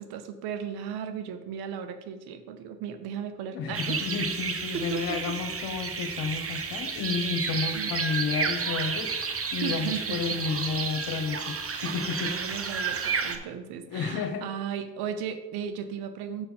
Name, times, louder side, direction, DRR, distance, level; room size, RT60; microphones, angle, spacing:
voice 1, 0.0-4.0 4.7-5.4 7.7-7.9 9.6-10.2 11.8-16.5, right 7 dB, 85° right, 9 dB, 0.8 m, -36 dB
voice 2, 3.5-12.4 13.9-14.4, left 5 dB, 70° left, 6 dB, 1.2 m, -31 dB
sound 1, 3.7-13.4, right 5 dB, 40° right, 1.0 m, -31 dB
6.7 x 4.5 x 5.6 m, 1.1 s
supercardioid pair, 55°, 37 cm